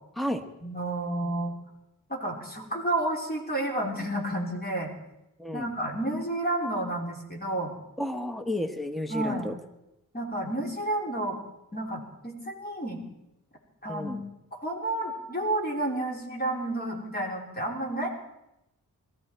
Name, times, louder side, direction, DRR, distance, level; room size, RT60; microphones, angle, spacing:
voice 1, 0.6-1.5 2.1-4.9 5.5-7.7 9.1-9.5 10.1-11.4 11.7-13.0 13.8-14.2 14.5-18.1, right 1 dB, 30° left, -1 dB, 3.5 m, -30 dB
voice 2, 8.0-9.5 13.9-14.2, left 1 dB, ahead, 6 dB, 1.0 m, -32 dB
21.5 x 14.0 x 4.5 m, 0.89 s
wide cardioid pair, 105°, 33 cm